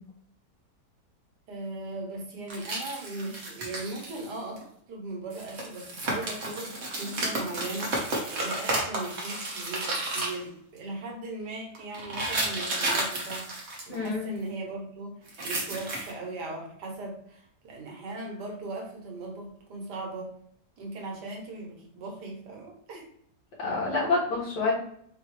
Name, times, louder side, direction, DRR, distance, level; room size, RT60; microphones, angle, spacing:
voice 1, 1.5-20.3 20.8-23.1, right 2 dB, 75° right, 0 dB, 1.6 m, -38 dB
sound 1, 2.5-4.3 4.6-4.7 5.3-10.4 11.8-14.1 15.3-16.1, right 2 dB, 45° right, 1.2 m, -32 dB
voice 2, 13.9-14.4 23.6-24.7, left 3 dB, 90° left, -5 dB, 2.2 m, -27 dB
4.6 x 2.9 x 3.0 m, 0.67 s
omnidirectional pair, 1.8 m